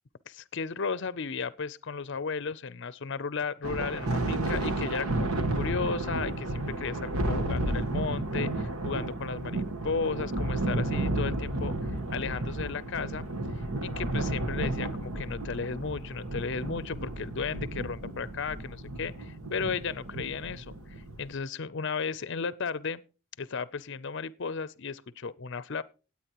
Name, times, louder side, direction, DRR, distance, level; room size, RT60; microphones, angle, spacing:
voice 1, 0.3-13.2 13.8-23.0 23.4-25.8, left 5 dB, 55° left, 0.5 m, -34 dB
Thunder, 3.6-21.3, right 2 dB, 85° right, 1.3 m, -32 dB
19.0 x 8.5 x 3.0 m
head